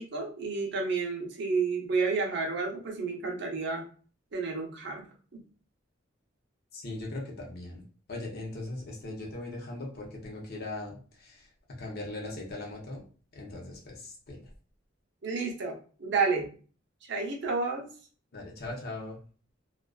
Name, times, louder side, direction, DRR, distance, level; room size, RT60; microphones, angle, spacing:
voice 1, 0.0-3.9 4.3-5.1 15.2-16.5 17.0-17.9, right 4 dB, 65° right, 1 dB, 0.6 m, -30 dB
voice 2, 6.7-7.8 8.1-11.5 11.8-13.0 13.3-14.5 18.3-19.2, left 2 dB, 55° left, -2 dB, 0.7 m, -39 dB
2.4 x 2.3 x 2.2 m, 0.40 s
head